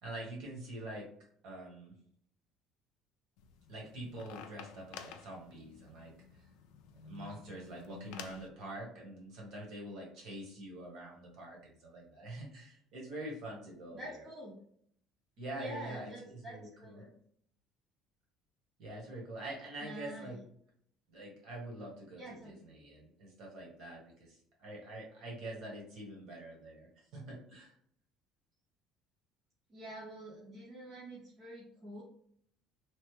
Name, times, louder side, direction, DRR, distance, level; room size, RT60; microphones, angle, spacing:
voice 1, 0.0-1.1 1.4-1.9 3.7-6.4 7.0-14.2 15.4-17.0 18.8-20.4 21.1-27.7, right 1 dB, 60° right, -1 dB, 1.3 m, -45 dB
sound 1, 3.4-8.5, left 6 dB, 75° left, 0.4 m, -51 dB
voice 2, 13.9-14.6 15.6-17.2 19.8-20.4 22.2-22.6 29.7-32.0, right 1 dB, 30° right, -6 dB, 0.7 m, -47 dB
3.1 x 2.0 x 3.2 m, 0.65 s
cardioid pair, 160°, 0 cm